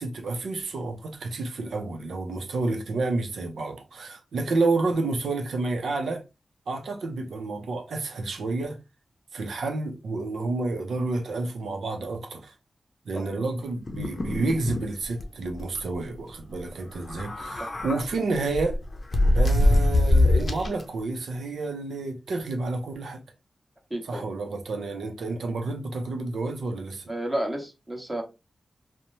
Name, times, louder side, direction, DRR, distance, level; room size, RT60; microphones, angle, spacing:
voice 1, 0.0-6.2 6.7-8.8 9.3-12.5 13.1-18.8 19.3-23.2 24.0-27.1, right 3 dB, 85° right, 0.5 m, -30 dB
sound 1, 13.9-14.9 15.2-15.3 15.6-15.8 17.0-18.0 18.5-20.8, left 1 dB, 50° left, 0.6 m, -22 dB
voice 2, 23.9-24.2 27.1-28.2, right 1 dB, 20° right, 1.2 m, -31 dB
2.9 x 2.0 x 2.6 m
cardioid pair, 50°, 0 cm